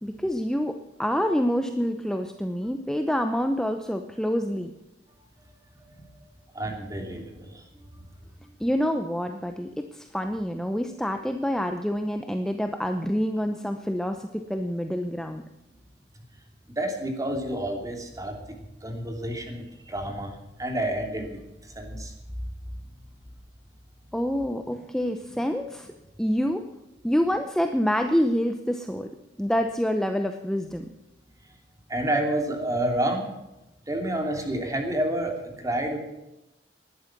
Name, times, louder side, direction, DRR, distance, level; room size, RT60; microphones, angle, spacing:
voice 1, 0.0-4.7 8.6-15.4 24.1-25.9 26.2-26.7 27.0-29.1 29.4-30.9, equal, 5° left, 6 dB, 0.8 m, -27 dB
voice 2, 6.5-7.6 7.9-8.0 16.8-22.1 31.9-33.3 33.9-36.0, right 1 dB, 20° right, 3 dB, 3.0 m, -29 dB
19.0 x 11.5 x 6.1 m, 0.96 s
head